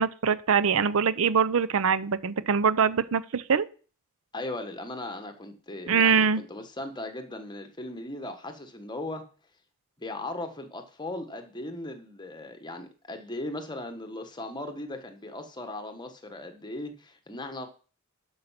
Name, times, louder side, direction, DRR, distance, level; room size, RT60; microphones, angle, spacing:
voice 1, 0.0-3.7 5.9-6.4, right 6 dB, 65° right, 17 dB, 0.6 m, -23 dB
voice 2, 4.3-9.3 10.0-17.7, left 2 dB, 20° left, 7 dB, 1.4 m, -38 dB
12.0 x 5.7 x 5.8 m, 0.38 s
head